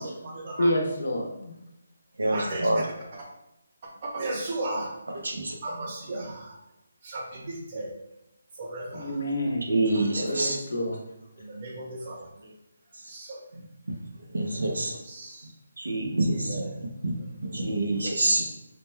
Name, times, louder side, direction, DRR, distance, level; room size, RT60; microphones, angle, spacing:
voice 1, 0.0-0.8 2.3-3.3 3.8-5.0 5.6-6.6 7.0-8.0 8.6-9.2 9.9-10.5 11.4-12.3 13.0-13.4 14.4-15.5 16.3-16.8 17.4-17.7 18.0-18.2, right 2 dB, 40° right, 0 dB, 0.9 m, -36 dB
voice 2, 0.6-1.5 8.9-9.6 10.2-11.0, equal, 75° left, 0 dB, 1.0 m, -28 dB
voice 3, 2.2-2.8 5.2-5.5 9.7-10.6 14.3-14.9 15.8-16.6 17.0-17.1 17.5-18.4, right 2 dB, 90° right, 1 dB, 0.9 m, -26 dB
5.0 x 2.3 x 3.2 m, 0.89 s
hypercardioid pair, 165°, 0 cm